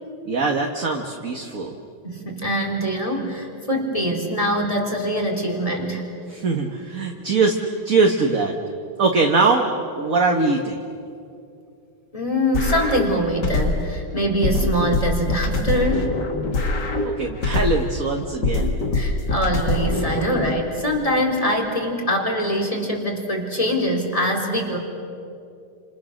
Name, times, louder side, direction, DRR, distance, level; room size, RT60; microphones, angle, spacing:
voice 1, 0.3-1.8 6.3-7.6 7.9-8.5 9.0-9.7 10.0-10.8 17.0-18.9, right 3 dB, 45° right, 2 dB, 1.7 m, -21 dB
voice 2, 2.0-6.0 12.1-16.1 18.9-24.8, equal, 15° left, 0 dB, 3.4 m, -23 dB
sound 1, 12.5-14.0 14.4-18.0 18.4-20.5, left 2 dB, 55° left, 2.4 m, -23 dB
30.0 x 27.0 x 6.5 m, 2.6 s
omnidirectional pair, 2.3 m